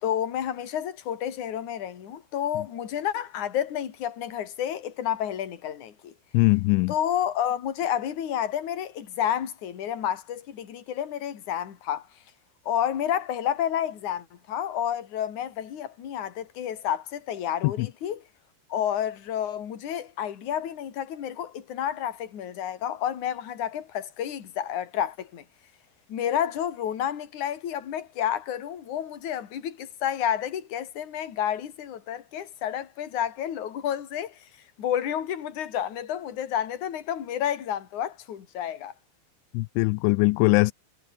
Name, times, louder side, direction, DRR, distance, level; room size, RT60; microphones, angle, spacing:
voice 1, 0.0-6.1 6.9-12.1 12.7-18.2 18.7-25.4 26.1-34.5 34.8-38.9, left 10 dB, 45° left, 3.6 m, -30 dB
voice 2, 6.3-6.9 17.8-17.9 39.5-40.7, left 25 dB, 85° left, 2.9 m, -21 dB
omnidirectional pair, 5.4 m